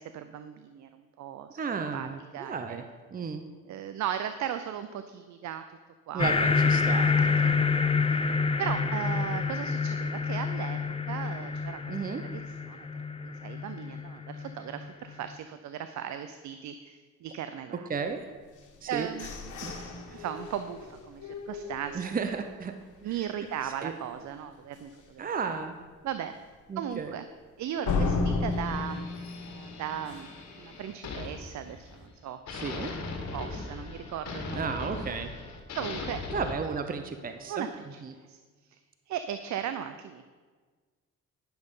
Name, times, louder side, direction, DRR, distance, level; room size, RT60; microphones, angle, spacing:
voice 1, 0.0-1.6 1.9-2.1 2.3-2.8 3.7-5.6 6.1-6.3 7.3-7.6 7.8-7.9 8.6-11.8 12.2-12.9 13.2-17.9 18.9-22.2 23.0-25.5 26.0-26.3 26.8-27.2 27.6-29.1 29.5-30.3 30.6-32.4 33.1-34.7 35.8-36.2 37.5-38.0 38.3-38.4 38.7-38.8 39.1-40.2, right 9 dB, 70° right, 10 dB, 0.6 m, -37 dB
voice 2, 1.6-2.8 3.1-3.4 6.1-7.8 11.9-12.2 17.9-18.2 18.8-19.1 19.6-19.7 20.1-20.2 21.9-22.7 23.6-23.9 25.2-25.7 26.7-27.1 32.5-32.9 34.5-35.3 36.3-37.7 38.0-38.1, right 5 dB, 30° right, 7 dB, 0.7 m, -34 dB
sound 1, 6.2-15.1, left 4 dB, 20° left, 0.6 m, -28 dB
sound 2, 18.6-22.5 22.9-23.0 23.4-23.8 24.2-24.3 24.8-24.9 27.8-30.5, left 3 dB, 80° left, 1.5 m, -33 dB
sound 3, 28.5-32.1 32.5-36.5, left 3 dB, 60° left, 1.9 m, -39 dB
10.5 x 6.6 x 5.5 m, 1.4 s
cardioid pair, 90°, 30 cm